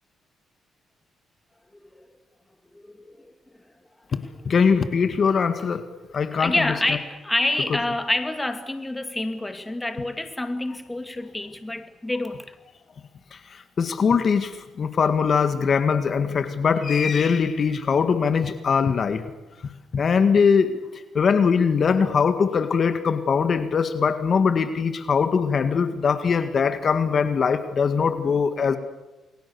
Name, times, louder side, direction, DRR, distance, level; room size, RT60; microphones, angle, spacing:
voice 1, 1.7-2.0 2.7-3.3 6.3-12.6, left 2 dB, 15° left, 2.3 m, -28 dB
voice 2, 4.1-5.8 6.1-6.7 13.5-19.2 19.9-20.8 21.1-28.8, left 6 dB, 50° left, 1.9 m, -21 dB
29.0 x 22.0 x 7.1 m
cardioid pair, 90°, 0 cm